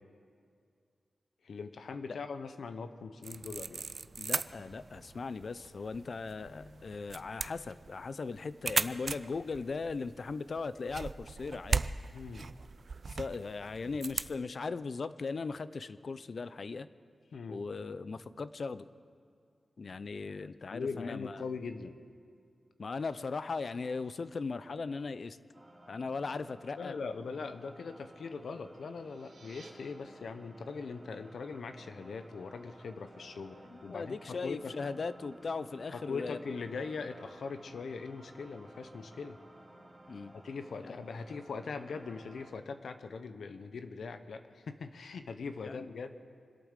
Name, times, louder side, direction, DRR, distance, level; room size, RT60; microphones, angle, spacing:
voice 1, 1.4-3.9 12.1-12.5 17.3-17.6 20.7-22.0 26.8-34.7 35.9-39.4 40.3-46.3, left 4 dB, 80° left, 9 dB, 0.8 m, -41 dB
sound 1, 3.2-14.4, right 4 dB, 55° right, 0.4 m, -38 dB
voice 2, 4.2-11.9 13.1-16.9 17.5-18.9 19.8-21.4 22.8-25.4 25.9-26.9 33.7-36.4 40.1-40.3 40.8-40.9 45.6-45.9, left 4 dB, 60° left, 15 dB, 0.5 m, -38 dB
sound 2, 25.5-42.5, right 1 dB, 20° right, 2.9 m, -55 dB
sound 3, 28.9-29.7, right 4 dB, 70° right, 2.1 m, -56 dB
25.5 x 8.6 x 6.6 m, 2.3 s
wide cardioid pair, 80°, 0 cm